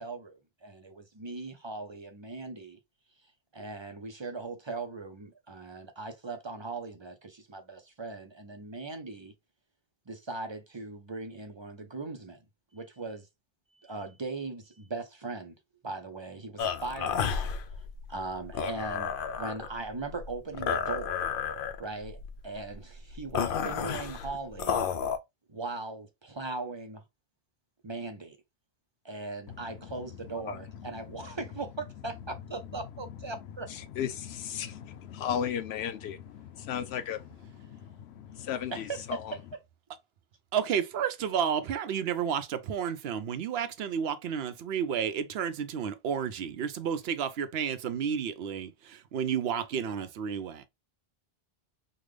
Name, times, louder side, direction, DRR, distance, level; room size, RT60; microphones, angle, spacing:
voice 1, 0.0-2.8 3.5-9.3 10.1-12.4 12.7-13.3 13.7-15.6 15.8-17.4 18.1-21.3 21.8-24.8 25.5-27.0 27.8-28.4 29.0-33.7 38.7-39.6, right 3 dB, 35° right, 0.5 m, -39 dB
sound 1, 16.6-25.2, left 7 dB, 65° left, 0.7 m, -32 dB
voice 2, 29.5-29.9 30.5-30.6 33.7-37.3 37.8-39.3, left 9 dB, 90° left, 0.9 m, -35 dB
voice 3, 40.5-50.7, right 8 dB, 75° right, 0.8 m, -31 dB
3.7 x 2.2 x 3.2 m
omnidirectional pair, 1.1 m